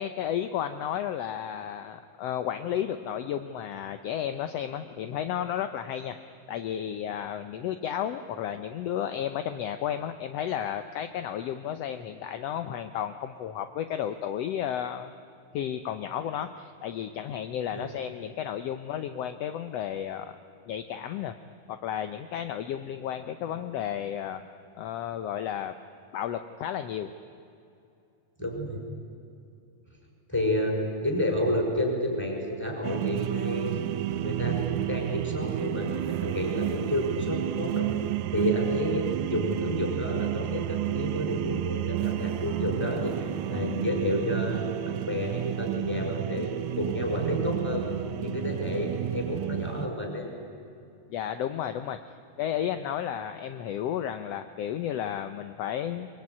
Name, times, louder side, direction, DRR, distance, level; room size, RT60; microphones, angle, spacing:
voice 1, 0.0-6.2 6.5-15.1 15.5-20.4 20.7-21.4 21.7-24.4 24.8-25.7 26.1-27.1 43.5-43.6 51.1-56.1, left 10 dB, 70° left, 9 dB, 1.5 m, -33 dB
voice 2, 28.4-28.8 30.3-33.9 34.2-37.9 38.3-47.9 48.2-50.3, left 1 dB, 5° left, 1 dB, 5.5 m, -30 dB
sound 1, 32.8-49.9, right 13 dB, 75° right, 2.0 m, -31 dB
23.5 x 23.0 x 9.7 m, 2.6 s
omnidirectional pair, 3.7 m